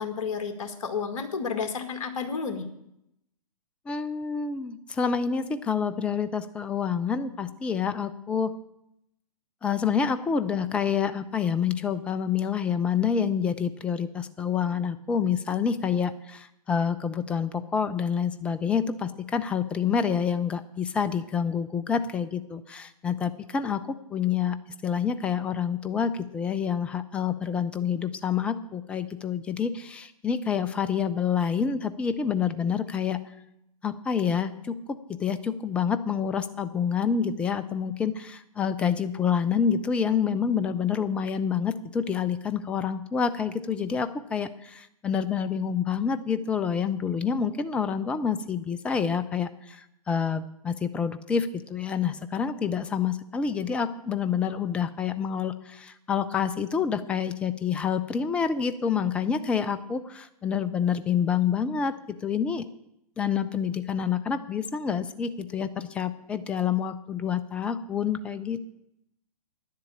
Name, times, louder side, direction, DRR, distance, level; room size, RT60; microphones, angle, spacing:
voice 1, 0.0-2.6, left 5 dB, 55° left, 7 dB, 1.8 m, -31 dB
voice 2, 3.9-8.5 9.6-23.8 24.1-24.6 24.8-33.2 33.8-61.9 62.2-62.6 63.2-68.6, left 7 dB, 5° left, 12 dB, 0.3 m, -27 dB
10.0 x 7.5 x 8.5 m, 0.81 s
figure-of-eight pair, 115°, 20 cm